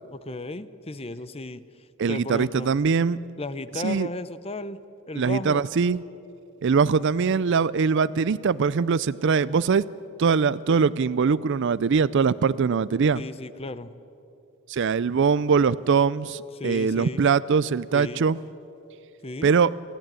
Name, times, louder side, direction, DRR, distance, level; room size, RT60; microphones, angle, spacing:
voice 1, 0.1-1.6 2.1-2.7 3.4-4.8 5.1-5.6 13.1-13.9 16.5-17.2 17.9-18.3 19.2-19.5, left 2 dB, 25° left, 14 dB, 0.7 m, -34 dB
voice 2, 2.0-3.2 3.8-4.1 5.2-6.0 6.6-9.8 10.2-13.2 14.7-18.4 19.4-19.7, right 5 dB, 55° right, 18 dB, 0.4 m, -22 dB
28.0 x 13.5 x 9.1 m, 2.8 s
head